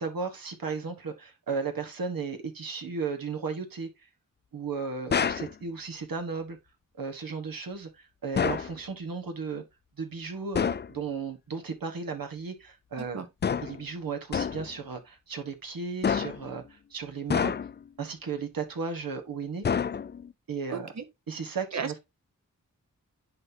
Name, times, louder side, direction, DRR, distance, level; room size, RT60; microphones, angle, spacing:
voice 1, 0.0-3.9 4.5-6.6 7.0-9.6 10.0-13.3 13.6-17.5 18.0-19.6 20.5-20.9 21.3-21.9, right 5 dB, 75° right, 1.5 m, -35 dB
sound 1, 5.1-5.5 8.4-8.8 10.5-10.9 13.4-13.8 14.3-14.7 16.0-16.5 17.3-17.9 19.6-20.3, left 7 dB, 30° left, 0.4 m, -28 dB
voice 2, 13.0-13.3 20.7-21.0 21.7-22.0, right 6 dB, 50° right, 1.1 m, -35 dB
10.5 x 4.2 x 2.8 m
cardioid pair, 65°, 34 cm